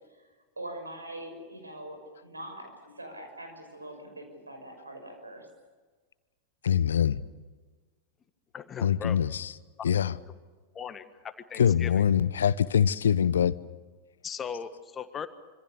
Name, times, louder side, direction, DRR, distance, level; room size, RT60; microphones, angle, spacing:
voice 1, 0.6-2.7 3.0-5.5, right 1 dB, 80° right, 6.1 m, -42 dB
voice 2, 6.6-7.2 8.8-9.5 9.8-10.2 11.6-13.5, left 8 dB, 65° left, 0.8 m, -24 dB
voice 3, 8.5-9.2 9.8-9.9 10.7-12.0 14.2-15.3, left 7 dB, 25° left, 1.6 m, -38 dB
26.0 x 25.5 x 6.7 m
figure-of-eight pair, 90°, 0 cm